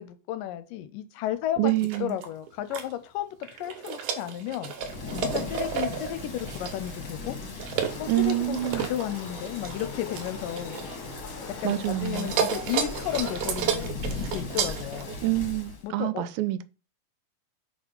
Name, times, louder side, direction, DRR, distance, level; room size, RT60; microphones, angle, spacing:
voice 1, 0.0-1.7 2.0-3.4 3.6-4.7 5.3-7.4 8.0-10.8 11.6-14.1 14.3-15.1 15.8-16.2, left 12 dB, 80° left, 2.2 m, -33 dB
voice 2, 1.6-2.2 8.1-8.8 11.6-12.3 15.2-16.6, right 16 dB, 90° right, 2.3 m, -27 dB
sound 1, 1.7-2.9 3.4-11.3 11.6-15.2, right 8 dB, 70° right, 2.1 m, -32 dB
Thunder / Rain, 4.8-15.8, left 3 dB, 45° left, 2.0 m, -38 dB
sound 2, 7.9-13.6, left 4 dB, 60° left, 1.4 m, -43 dB
4.9 x 4.8 x 5.4 m
omnidirectional pair, 4.0 m